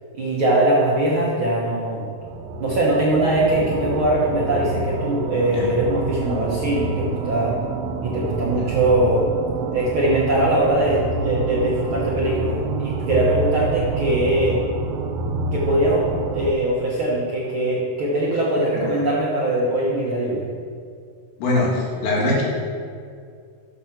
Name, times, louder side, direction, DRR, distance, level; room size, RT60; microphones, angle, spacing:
voice 1, 0.2-2.1 2.6-7.5 8.0-9.2 9.7-14.6 15.5-16.1 16.3-20.5, right 1 dB, 55° right, -6 dB, 1.4 m, -21 dB
sound 1, 2.2-16.5, right 3 dB, 80° right, 2.2 m, -27 dB
voice 2, 21.4-22.4, left 2 dB, 80° left, -3 dB, 3.6 m, -22 dB
7.7 x 7.2 x 5.9 m, 2.2 s
omnidirectional pair, 4.0 m